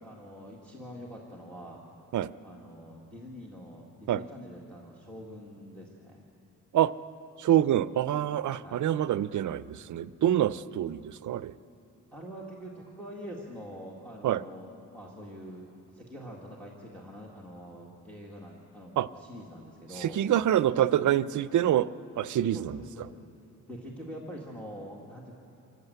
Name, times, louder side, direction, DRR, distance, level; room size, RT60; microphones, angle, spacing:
voice 1, 0.0-1.8 2.4-6.2 8.6-8.9 12.1-20.2 22.5-23.2 23.7-25.3, equal, 5° left, -3 dB, 2.0 m, -45 dB
voice 2, 7.4-11.5 14.2-14.4 19.0-19.1 20.0-22.8, right 11 dB, 60° right, 16 dB, 0.5 m, -26 dB
26.5 x 16.0 x 8.1 m, 2.8 s
wide cardioid pair, 150°, 34 cm